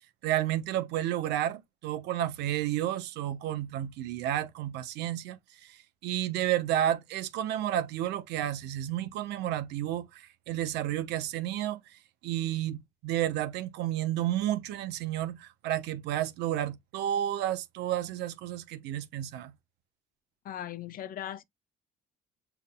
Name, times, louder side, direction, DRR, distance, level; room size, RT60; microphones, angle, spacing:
voice 1, 0.2-11.8 12.2-19.5, right 12 dB, 85° right, 0.9 m, -31 dB
voice 2, 20.4-21.4, left 11 dB, 60° left, 0.6 m, -38 dB
6.8 x 3.5 x 2.2 m
cardioid pair, 110°, 17 cm